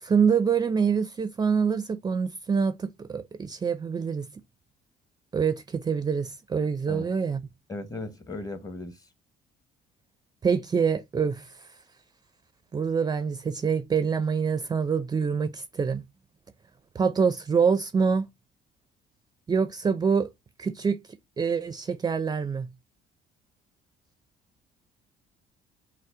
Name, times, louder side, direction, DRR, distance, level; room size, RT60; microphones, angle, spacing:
voice 1, 0.0-4.3 5.3-7.4 10.4-11.7 12.7-16.0 16.9-18.3 19.5-20.3 20.6-21.0 21.4-22.7, right 6 dB, 25° right, 0.4 m, -25 dB
voice 2, 7.7-9.0, left 2 dB, 20° left, 0.9 m, -36 dB
5.4 x 2.0 x 3.6 m
cardioid pair, 110°, 17 cm